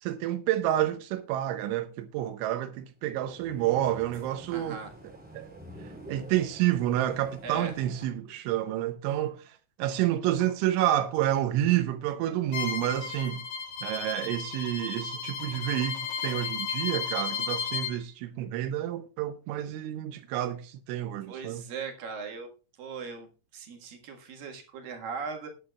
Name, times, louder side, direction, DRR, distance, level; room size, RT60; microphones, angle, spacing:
voice 1, 0.0-4.8 5.3-5.5 6.1-9.5 9.8-13.4 13.8-21.6, right 12 dB, 85° right, 3.1 m, -29 dB
sound 1, 3.0-8.0, right 1 dB, 10° right, 0.4 m, -48 dB
voice 2, 4.5-4.9 7.4-7.7 21.3-22.5 22.8-25.5, right 5 dB, 60° right, 2.7 m, -39 dB
Bowed string instrument, 12.5-17.9, left 6 dB, 60° left, 2.1 m, -34 dB
18.0 x 9.4 x 2.3 m
omnidirectional pair, 5.4 m